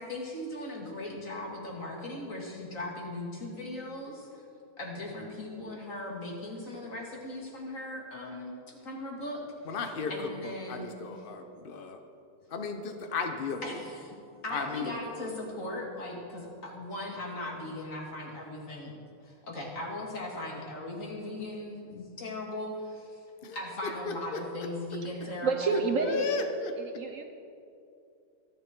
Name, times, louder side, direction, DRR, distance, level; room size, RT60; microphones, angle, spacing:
voice 1, 0.0-4.4 4.8-9.4 10.1-10.9 13.6-14.2 14.4-18.9 19.2-23.2 23.5-25.9, left 1 dB, 35° left, -1 dB, 2.7 m, -38 dB
voice 2, 9.6-12.0 12.5-13.6 14.5-15.0 23.4-23.6 24.1-24.4 26.0-26.7, left 4 dB, 55° left, 5 dB, 0.5 m, -34 dB
voice 3, 25.2-26.5 26.8-27.2, right 4 dB, 50° right, 5 dB, 1.0 m, -30 dB
25.0 x 10.0 x 4.5 m, 2.6 s
omnidirectional pair, 2.4 m